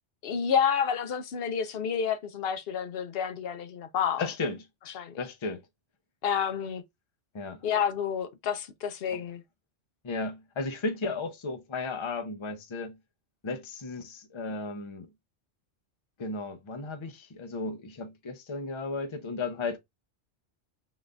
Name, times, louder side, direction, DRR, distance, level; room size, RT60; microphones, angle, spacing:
voice 1, 0.2-4.3 4.9-5.1 6.2-6.8 7.6-9.4, left 7 dB, 60° left, 0.8 m, -29 dB
voice 2, 4.2-4.6 5.2-5.6 7.3-7.6 9.1-9.2 10.0-12.9 13.4-15.1 16.2-19.8, left 3 dB, 35° left, 0.5 m, -34 dB
4.0 x 2.5 x 3.2 m
omnidirectional pair, 1.2 m